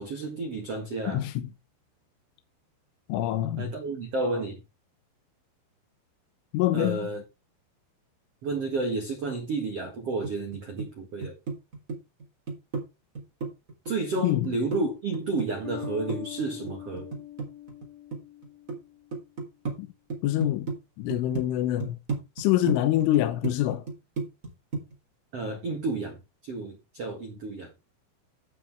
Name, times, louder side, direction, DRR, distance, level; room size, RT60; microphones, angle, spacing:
voice 1, 0.0-1.2 3.6-4.6 6.7-7.2 8.4-11.4 13.8-17.1 25.3-27.7, right 3 dB, 85° right, 1.3 m, -31 dB
voice 2, 1.1-1.5 3.1-3.7 6.5-7.0 14.2-14.5 19.8-19.9 20.2-20.7 21.0-22.0 22.4-23.8, left 14 dB, 80° left, 3.4 m, -25 dB
sound 1, 10.2-10.9 11.2-12.8 13.1-14.8 15.1-17.9 18.1-18.8 19.1-19.8 20.1-20.8 21.1-21.4 21.8-24.5 24.7-24.9, right 4 dB, 20° right, 2.7 m, -33 dB
Bass guitar, 15.6-19.2, left 12 dB, 30° left, 1.8 m, -42 dB
15.0 x 6.2 x 3.5 m
omnidirectional pair, 5.8 m